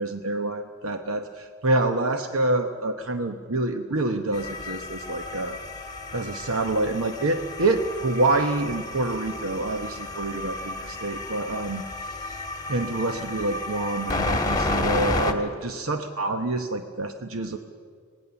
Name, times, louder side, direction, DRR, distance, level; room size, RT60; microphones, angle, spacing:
voice 1, 0.0-5.6 6.1-12.4 12.7-17.6, right 2 dB, 70° right, 7 dB, 1.0 m, -27 dB
sound 1, 4.3-15.3, left 2 dB, 15° left, 1.6 m, -31 dB
25.5 x 19.0 x 7.0 m, 2.1 s
head